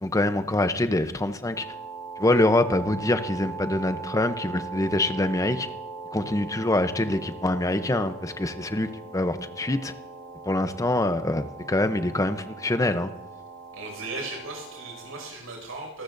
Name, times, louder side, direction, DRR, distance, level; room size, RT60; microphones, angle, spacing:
voice 1, 0.0-1.7 2.2-5.7 6.1-8.9 9.1-9.9 10.5-13.1, left 1 dB, 15° left, 9 dB, 0.7 m, -25 dB
sound 1, 1.5-15.3, right 4 dB, 45° right, 1.5 m, -40 dB
voice 2, 13.7-16.0, right 2 dB, 85° right, 1 dB, 5.8 m, -37 dB
26.0 x 13.5 x 2.6 m, 0.99 s
head